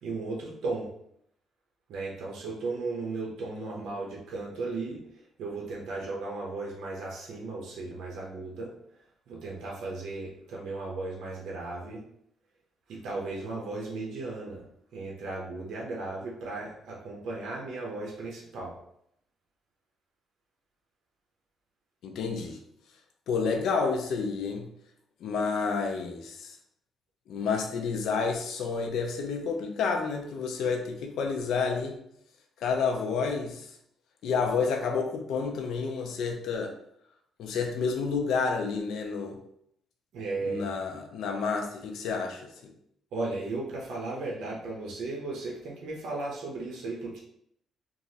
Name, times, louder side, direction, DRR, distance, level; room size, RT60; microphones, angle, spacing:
voice 1, 0.0-0.9 1.9-5.0 5.4-8.7 9.3-12.0 12.9-14.6 14.9-18.7 40.1-40.7 43.1-47.2, right 3 dB, 75° right, -3 dB, 0.6 m, -35 dB
voice 2, 22.0-22.6 23.3-24.7 25.2-26.6 27.3-32.0 32.6-33.7 34.2-36.7 37.4-39.4 40.4-42.7, left 5 dB, 75° left, 3 dB, 0.5 m, -30 dB
3.0 x 2.4 x 2.7 m, 0.72 s
cardioid pair, 100°, 0 cm